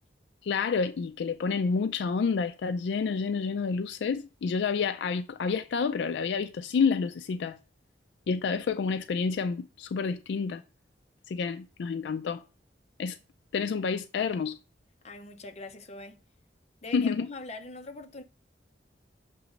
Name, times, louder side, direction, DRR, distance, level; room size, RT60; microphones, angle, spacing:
voice 1, 0.4-7.6 8.3-10.6 11.3-12.4 13.0-13.2 13.5-14.6 16.9-17.3, left 5 dB, 70° left, 0.3 m, -29 dB
voice 2, 15.0-16.2 16.8-18.2, left 3 dB, 35° left, 0.7 m, -42 dB
6.8 x 3.0 x 5.0 m
head